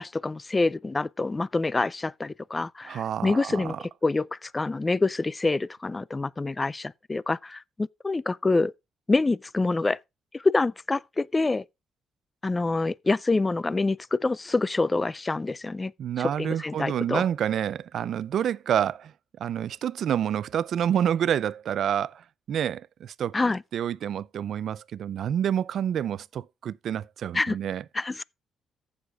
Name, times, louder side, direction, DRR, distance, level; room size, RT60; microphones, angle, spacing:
voice 1, 0.0-8.7 9.1-10.0 10.3-11.6 12.4-15.9 16.4-17.2 23.3-23.6 27.3-27.6 27.9-28.2, left 3 dB, 20° left, 0.4 m, -26 dB
voice 2, 2.9-3.8 16.0-19.1 19.4-23.4 23.7-27.8, right 9 dB, 65° right, 0.4 m, -28 dB
15.0 x 6.4 x 2.4 m
cardioid pair, 85°, 0 cm